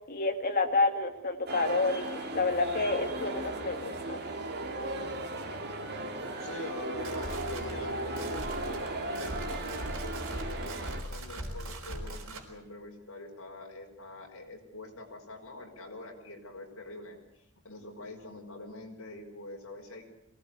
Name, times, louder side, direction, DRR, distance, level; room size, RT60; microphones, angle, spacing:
voice 1, 0.1-4.2, left 3 dB, 45° left, 4 dB, 2.7 m, -29 dB
sound 1, 1.5-11.0, right 2 dB, 50° right, 2.9 m, -36 dB
voice 2, 6.4-20.0, left 2 dB, 65° left, 1 dB, 5.6 m, -44 dB
sound 2, 6.8-12.5, right 1 dB, 65° right, 4.9 m, -40 dB
23.0 x 18.5 x 8.3 m, 0.86 s
head